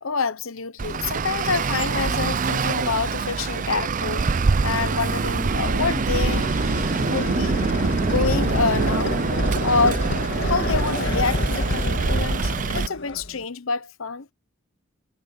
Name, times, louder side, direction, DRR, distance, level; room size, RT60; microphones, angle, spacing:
voice 1, 0.0-4.3 4.6-6.5 7.0-7.6 8.0-9.2 9.6-10.1 10.4-14.3, left 4 dB, 85° left, 1.0 m, -27 dB
Traffic noise roadway noise, 0.8-12.9, right 4 dB, 40° right, 0.5 m, -24 dB
sound 1, 5.5-13.4, left 1 dB, 60° left, 2.1 m, -28 dB
head